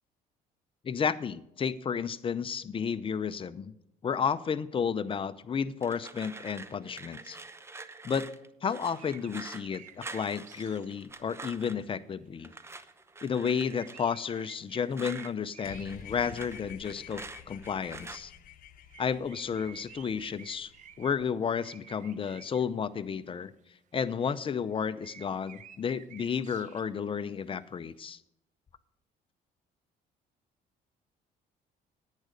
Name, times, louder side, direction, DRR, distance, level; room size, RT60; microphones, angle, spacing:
voice 1, 0.8-3.7 4.0-7.4 8.0-8.3 8.6-12.5 13.2-18.3 19.0-20.7 21.0-23.5 23.9-28.2, left 6 dB, 30° left, 13 dB, 0.7 m, -32 dB
sound 1, 5.8-11.9 12.4-15.3 15.6-18.2, right 3 dB, 15° right, 0.7 m, -46 dB
sound 2, 8.9-11.5 11.8-12.9 13.2-16.9 17.1-17.4 17.7-17.8 18.3-18.4 18.8-21.2 21.6-22.8 23.9-27.1 27.5-27.6, right 9 dB, 45° right, 0.7 m, -53 dB
sound 3, 15.6-21.2, left 10 dB, 55° left, 1.0 m, -50 dB
10.5 x 9.3 x 5.1 m, 0.80 s
cardioid pair, 110°, 17 cm